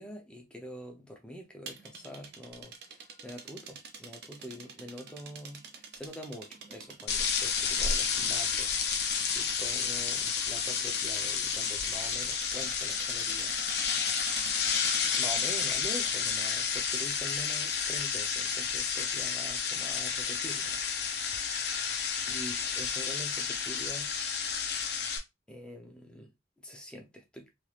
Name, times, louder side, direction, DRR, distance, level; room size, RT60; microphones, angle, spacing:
voice 1, 0.0-2.7 3.2-8.7 9.3-13.5 15.2-20.8 22.3-24.2 25.5-26.3 26.6-27.5, equal, 5° left, 0.6 m, -45 dB
sound 1, 1.7-15.4, right 5 dB, 60° right, 0.6 m, -47 dB
sound 2, 7.1-25.2, left 6 dB, 60° left, 0.6 m, -31 dB
3.3 x 3.0 x 2.4 m
head